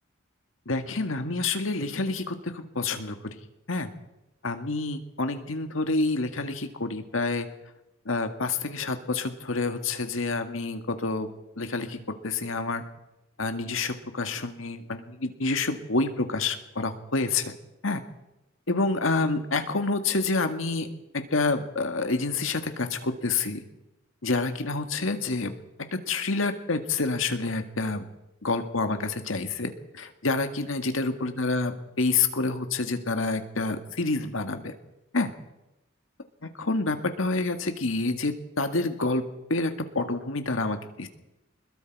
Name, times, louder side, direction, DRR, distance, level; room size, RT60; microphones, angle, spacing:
voice 1, 0.7-3.2 3.7-3.9 4.4-7.5 8.1-12.8 13.4-17.5 17.8-18.0 18.7-20.9 21.1-23.6 24.2-25.6 25.9-28.1 28.4-34.7 35.1-35.3 36.4-39.2 39.5-41.1, left 3 dB, 85° left, 7 dB, 1.8 m, -28 dB
25.5 x 21.5 x 4.8 m, 0.95 s
head